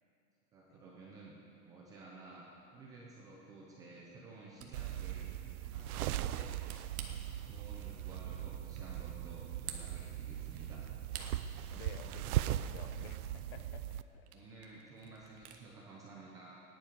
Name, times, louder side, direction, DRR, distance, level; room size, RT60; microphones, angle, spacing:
voice 1, 0.5-1.4 1.7-5.3 5.7-6.5 7.5-10.9 14.3-16.6, right 3 dB, 10° right, -4 dB, 0.4 m, -53 dB
Camera, 4.5-15.6, right 8 dB, 50° right, 1.4 m, -54 dB
sound 1, 4.7-14.0, right 12 dB, 85° right, 0.6 m, -39 dB
voice 2, 11.7-14.3, left 9 dB, 45° left, 10 dB, 0.8 m, -54 dB
18.5 x 10.5 x 5.1 m, 2.7 s
supercardioid pair, 165°, 43 cm